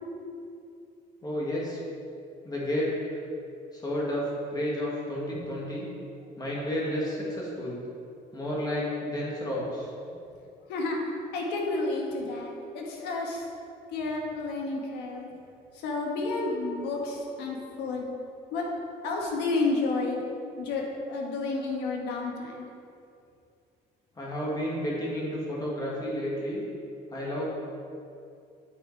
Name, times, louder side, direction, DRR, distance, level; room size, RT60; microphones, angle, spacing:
voice 1, 1.2-1.8 2.4-3.2 3.7-5.9 6.4-7.8 8.3-9.9 24.2-26.6 27.1-27.4, equal, 25° left, -5 dB, 1.8 m, -31 dB
voice 2, 10.7-11.0 11.3-13.4 13.9-15.3 15.7-18.1 18.5-18.6 19.0-20.2 20.6-22.7, left 3 dB, 85° left, 0 dB, 1.4 m, -31 dB
9.0 x 5.1 x 4.6 m, 2.5 s
cardioid pair, 110°, 17 cm